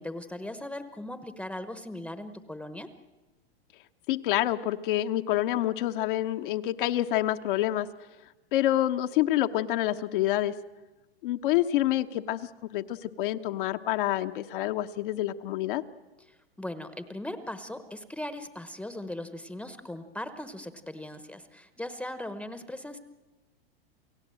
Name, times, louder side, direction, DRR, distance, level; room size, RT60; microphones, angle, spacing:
voice 1, 0.0-2.9 16.3-23.0, left 1 dB, 5° left, 10 dB, 1.0 m, -39 dB
voice 2, 4.1-7.9 8.5-10.5 11.2-15.8, left 14 dB, 60° left, 7 dB, 1.1 m, -27 dB
29.0 x 16.0 x 7.7 m, 1.2 s
hypercardioid pair, 120°, 31 cm